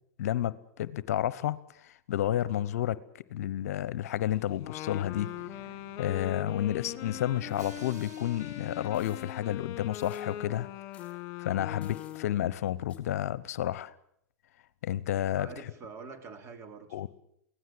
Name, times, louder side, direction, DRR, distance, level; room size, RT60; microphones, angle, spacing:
voice 1, 0.2-3.0 3.3-5.3 6.0-10.7 11.4-13.9 14.8-15.5 16.9-17.1, left 12 dB, 70° left, 0.9 m, -31 dB
Wind instrument woodwind instrument, 4.6-12.5, left 13 dB, 45° left, 2.0 m, -41 dB
Drum, 5.2-10.0, right 4 dB, 85° right, 2.5 m, -52 dB
sound 1, 7.5-8.2 8.9-9.3 9.9-10.3 10.9-11.1 11.8-12.2 12.9-13.0, left 6 dB, 15° left, 4.5 m, -59 dB
voice 2, 15.4-17.1, right 4 dB, 30° right, 3.6 m, -45 dB
24.0 x 17.0 x 7.8 m
hypercardioid pair, 110°, 9 cm